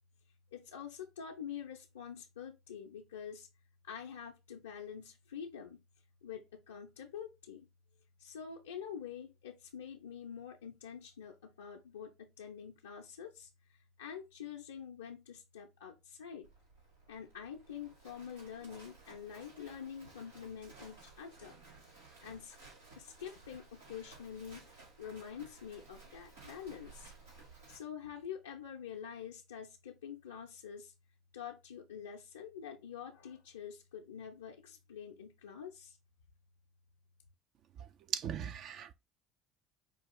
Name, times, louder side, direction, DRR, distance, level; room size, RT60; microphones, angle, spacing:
voice 1, 0.5-3.5 3.8-5.8 6.2-7.7 8.2-16.5 17.1-21.6 22.2-22.6 23.0-24.7 25.0-27.1 27.7-30.9 31.3-36.0, left 8 dB, 80° left, 0.5 m, -46 dB
Livestock farm animals working animals, 16.4-27.8, right 3 dB, 80° right, 2.0 m, -57 dB
voice 2, 38.1-38.9, right 8 dB, 50° right, 0.5 m, -38 dB
5.0 x 2.4 x 3.7 m
hypercardioid pair, 65°, 0 cm